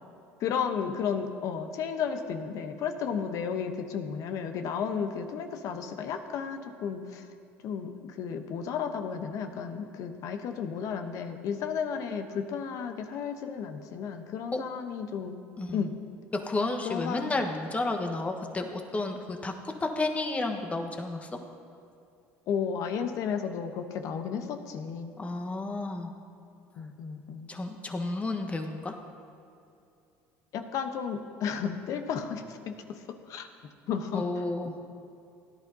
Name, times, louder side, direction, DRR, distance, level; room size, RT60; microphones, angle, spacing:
voice 1, 0.4-7.3 7.6-15.4 15.7-15.9 16.8-17.4 22.5-25.1 26.8-27.5 30.5-33.5 33.9-34.2, left 7 dB, 60° left, 7 dB, 0.9 m, -33 dB
voice 2, 16.3-19.5 19.8-21.3 25.2-26.1 27.5-29.0 34.1-34.7, left 2 dB, 20° left, 4 dB, 1.2 m, -31 dB
17.0 x 11.0 x 2.8 m, 2.6 s
supercardioid pair, 90°, 6 cm